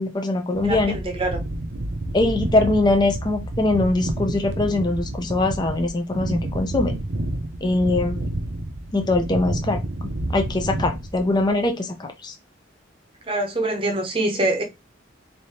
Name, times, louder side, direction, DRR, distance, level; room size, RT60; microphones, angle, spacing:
voice 1, 0.0-1.0 2.1-7.0 7.6-8.3 8.9-12.3, left 2 dB, 20° left, 0.5 m, -22 dB
sound 1, 0.5-11.7, right 1 dB, 60° right, 0.7 m, -29 dB
voice 2, 0.6-1.4 13.3-14.6, right 2 dB, 25° right, 0.8 m, -24 dB
3.3 x 2.7 x 4.2 m
head